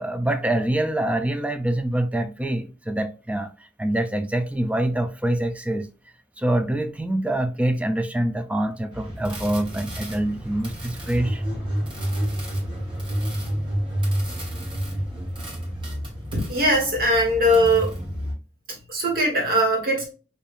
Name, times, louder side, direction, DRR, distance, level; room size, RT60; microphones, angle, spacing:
voice 1, 0.0-3.5 3.8-5.9 6.4-11.4, right 1 dB, 5° right, 0.3 m, -25 dB
sound 1, 8.9-18.3, equal, 25° right, 1.2 m, -29 dB
voice 2, 16.3-17.9 18.9-20.0, equal, 50° right, 1.4 m, -20 dB
5.3 x 2.6 x 2.4 m
head